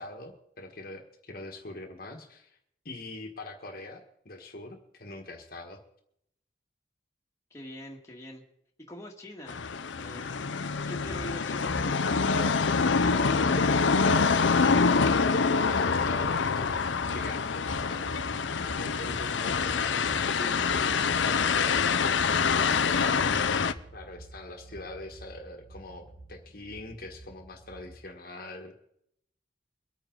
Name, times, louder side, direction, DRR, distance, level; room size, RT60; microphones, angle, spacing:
voice 1, 0.0-2.6 2.8-5.8 15.2-23.2 23.9-28.7, left 2 dB, 50° left, 3 dB, 1.5 m, -43 dB
voice 2, 7.5-8.4 8.8-9.7 9.9-10.3 10.9-13.9 19.1-19.4, equal, 15° left, -1 dB, 1.9 m, -44 dB
sound 1, 9.5-23.7, left 5 dB, 85° left, 0.7 m, -26 dB
sound 2, 10.7-28.0, right 1 dB, 65° right, 3.7 m, -45 dB
23.5 x 9.2 x 3.9 m, 0.74 s
head